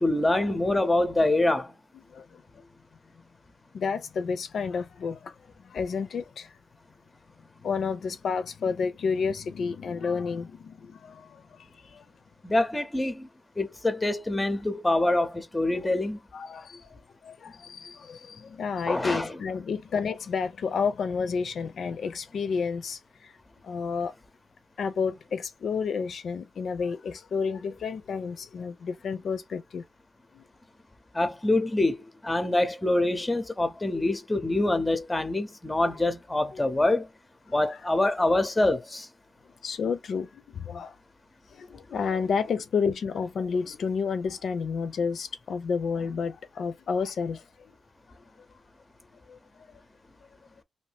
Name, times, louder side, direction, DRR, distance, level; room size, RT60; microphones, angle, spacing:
voice 1, 0.0-1.7 12.4-13.3 13.6-16.2 18.9-19.4 31.1-37.1 37.5-39.1, left 2 dB, 15° left, 0.5 m, -25 dB
voice 2, 2.1-2.4 3.7-5.4 5.6-6.5 7.6-12.1 16.3-23.3 23.6-24.1 24.8-29.8 30.3-30.4 33.9-34.1 36.5-36.6 37.5-37.6 39.6-40.9 41.5-47.7 49.3-49.4, left 5 dB, 75° left, 0.4 m, -31 dB
2.7 x 2.6 x 3.3 m
wide cardioid pair, 130°, 0 cm